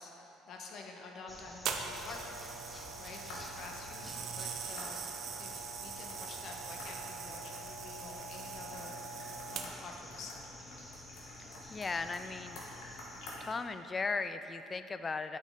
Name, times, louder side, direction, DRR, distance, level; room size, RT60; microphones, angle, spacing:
voice 1, 0.0-2.4 3.0-5.1 5.4-10.4, left 3 dB, 55° left, 1 dB, 0.9 m, -49 dB
sound 1, 1.3-13.4, equal, 5° left, 0.8 m, -51 dB
sound 2, 1.7-10.0 10.7-10.9, right 5 dB, 60° right, 0.5 m, -42 dB
sound 3, 2.6-13.5, left 2 dB, 80° left, 1.2 m, -51 dB
voice 2, 11.4-12.6 13.4-15.4, left 4 dB, 30° left, 10 dB, 0.3 m, -37 dB
8.7 x 4.3 x 3.8 m, 3.0 s
supercardioid pair, 80°, 0 cm